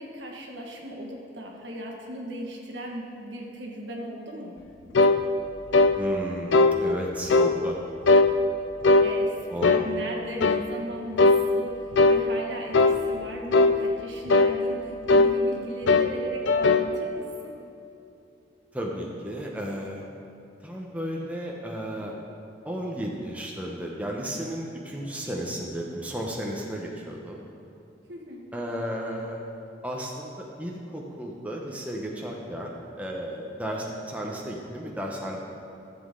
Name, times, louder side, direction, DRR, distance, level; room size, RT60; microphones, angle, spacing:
voice 1, 0.0-4.6 9.0-9.3 9.6-17.5 25.2-25.4 28.1-28.5, right 1 dB, 65° right, 0 dB, 1.6 m, -37 dB
sound 1, 4.9-5.2 5.7-6.0 6.5-6.8 7.3-7.5 8.1-8.3 8.8-9.1 9.6-9.9 10.4-10.6 11.2-11.4 11.9-12.2 12.7-13.0 13.5-13.8 14.3-14.5 15.1-15.3 15.9-16.1 16.5-16.9, left 3 dB, 70° left, 0.5 m, -18 dB
voice 2, 5.9-7.8 9.5-9.8 18.7-20.1 20.6-22.2 22.6-27.5 28.5-29.4 29.8-35.4, equal, 10° right, -2 dB, 0.9 m, -34 dB
14.5 x 7.7 x 3.8 m, 2.8 s
head